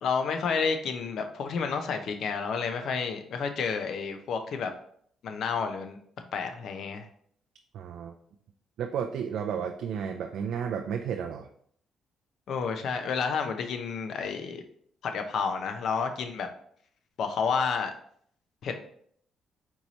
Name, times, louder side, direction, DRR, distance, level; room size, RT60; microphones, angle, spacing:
voice 1, 0.0-4.7 5.2-6.0 6.3-7.1 12.5-14.6 15.1-16.5 17.2-17.9 18.6-18.8, left 5 dB, 70° left, 6 dB, 0.6 m, -30 dB
voice 2, 7.7-8.1 8.8-11.5, right 7 dB, 80° right, 4 dB, 0.4 m, -32 dB
4.5 x 2.9 x 4.0 m, 0.63 s
cardioid pair, 90°, 0 cm